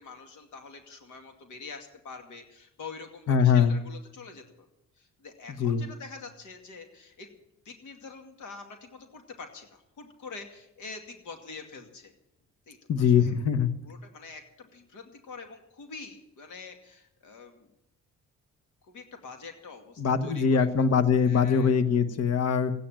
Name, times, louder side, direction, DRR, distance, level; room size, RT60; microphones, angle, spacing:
voice 1, 0.0-4.7 5.0-7.4 7.6-12.1 12.7-13.3 13.8-17.7 18.8-20.9 21.2-21.8, left 4 dB, 75° left, 5 dB, 2.4 m, -45 dB
voice 2, 3.3-3.7 5.6-5.8 12.9-13.7 20.0-22.7, left 6 dB, 55° left, 12 dB, 1.3 m, -22 dB
15.5 x 9.8 x 9.0 m, 0.83 s
cardioid pair, 90°, 30 cm